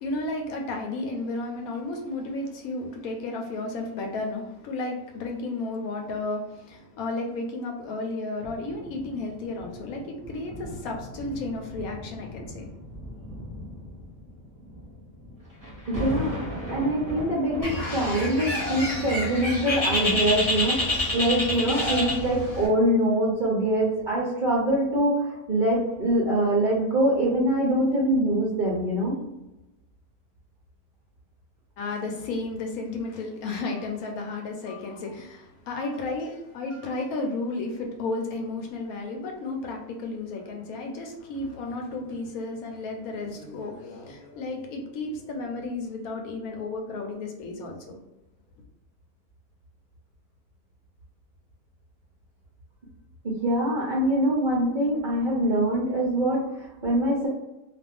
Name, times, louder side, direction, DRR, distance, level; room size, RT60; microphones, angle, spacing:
voice 1, 0.0-12.7 31.8-48.0, left 2 dB, 75° left, 2 dB, 1.0 m, -33 dB
sound 1, 8.4-21.2 21.9-22.0, equal, 15° right, 0.8 m, -39 dB
voice 2, 15.9-16.4 16.7-29.2 53.2-57.3, right 1 dB, 55° right, -6 dB, 0.5 m, -24 dB
Bird, 17.6-22.7, left 1 dB, 30° left, 0.8 m, -27 dB
2.4 x 2.4 x 3.4 m, 0.97 s
omnidirectional pair, 1.6 m